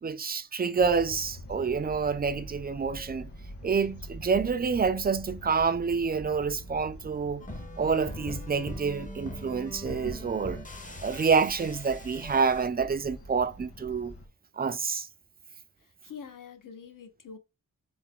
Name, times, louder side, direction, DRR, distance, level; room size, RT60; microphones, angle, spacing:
voice 1, 0.0-3.3 3.6-7.4 7.8-10.6 11.0-14.1 14.6-15.1, right 5 dB, 25° right, 0.4 m, -28 dB
sound 1, 0.8-14.3, equal, 40° left, 1.5 m, -45 dB
sound 2, 7.4-12.7, left 1 dB, 20° left, 0.8 m, -42 dB
voice 2, 15.8-17.4, left 6 dB, 60° left, 0.8 m, -45 dB
3.4 x 2.1 x 3.6 m
wide cardioid pair, 75°, 36 cm